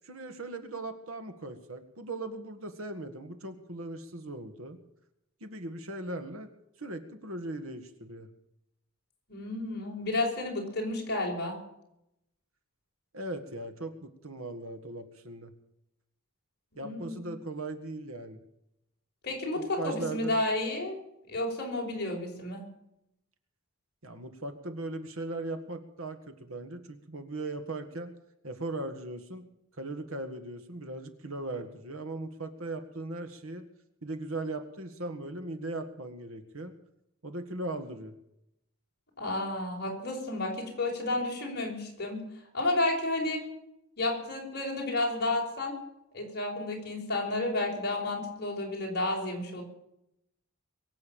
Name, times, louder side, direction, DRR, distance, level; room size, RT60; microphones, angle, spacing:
voice 1, 0.0-4.8 5.4-6.5 6.8-8.3 13.1-15.5 16.8-18.4 19.6-20.4 24.0-28.1 28.4-29.5 29.8-33.7 34.0-36.8 37.2-38.2, right 2 dB, 65° right, 8 dB, 1.9 m, -38 dB
voice 2, 9.3-11.6 16.8-17.2 19.2-21.0 21.3-22.6 39.2-42.2 42.5-43.4 44.0-45.8 46.1-49.6, left 2 dB, 45° left, 0 dB, 5.6 m, -31 dB
23.0 x 8.4 x 7.1 m, 0.82 s
head